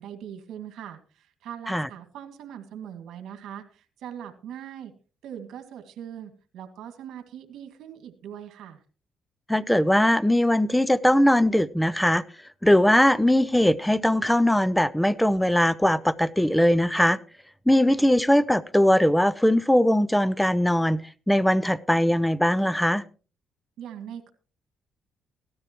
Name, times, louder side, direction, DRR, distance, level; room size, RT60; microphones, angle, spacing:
voice 1, 0.0-4.9 5.2-8.8 23.8-24.3, right 9 dB, 80° right, 7 dB, 2.0 m, -41 dB
voice 2, 9.5-12.2 12.6-17.2 17.7-23.0, left 1 dB, 5° left, 19 dB, 0.7 m, -20 dB
17.0 x 13.0 x 3.0 m, 0.36 s
cardioid pair, 90°, 0 cm